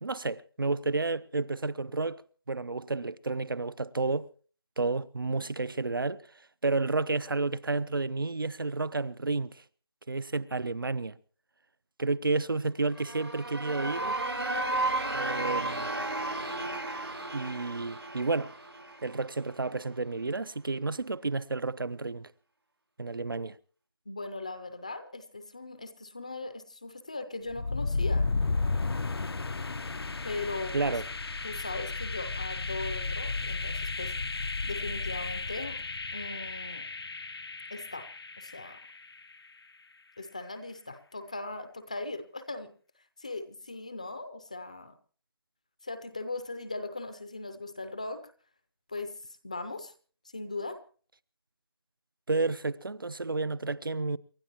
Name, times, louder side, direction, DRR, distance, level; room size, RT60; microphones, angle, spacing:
voice 1, 0.0-2.2 2.5-4.3 4.8-6.2 6.6-9.6 10.1-11.2 12.0-14.2 15.1-15.9 17.3-18.5 19.0-22.3 23.0-23.6 30.7-31.0 52.3-54.2, right 3 dB, 60° right, 0.8 m, -31 dB
sound 1, 12.8-19.6, right 2 dB, 85° right, 6.2 m, -33 dB
voice 2, 24.1-28.3 30.2-31.0 31.4-34.1 34.6-35.8 36.1-36.9 37.7-38.1 38.4-38.8 40.2-42.7 43.2-44.9 45.8-48.3 48.9-49.2 49.4-49.9 50.3-50.8, left 3 dB, 15° left, 0.6 m, -39 dB
sound 2, 27.5-39.4, left 3 dB, 80° left, 0.7 m, -33 dB
28.5 x 12.5 x 3.0 m
figure-of-eight pair, 175°, 13 cm